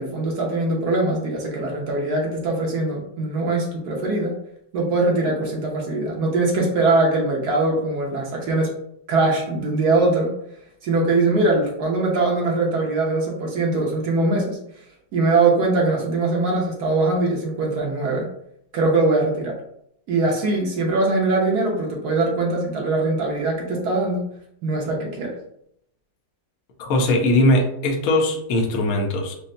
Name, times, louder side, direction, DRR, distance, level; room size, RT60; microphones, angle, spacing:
voice 1, 0.0-4.3 4.7-8.7 9.1-10.3 10.8-14.6 15.1-18.3 18.7-19.5 20.1-24.2 24.6-25.3, right 2 dB, 65° right, -2 dB, 1.0 m, -22 dB
voice 2, 26.8-29.3, left 1 dB, 80° left, 1 dB, 0.8 m, -20 dB
5.2 x 2.1 x 2.6 m, 0.74 s
omnidirectional pair, 2.4 m